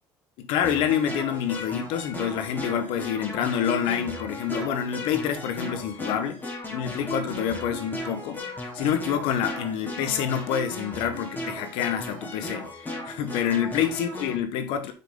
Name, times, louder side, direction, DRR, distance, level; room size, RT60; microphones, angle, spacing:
voice 1, 0.4-6.4 6.7-14.9, left 9 dB, 85° left, 1.1 m, -27 dB
sound 1, 0.6-14.4, left 1 dB, 20° left, 2.9 m, -36 dB
5.7 x 5.6 x 3.8 m
cardioid pair, 100°, 9 cm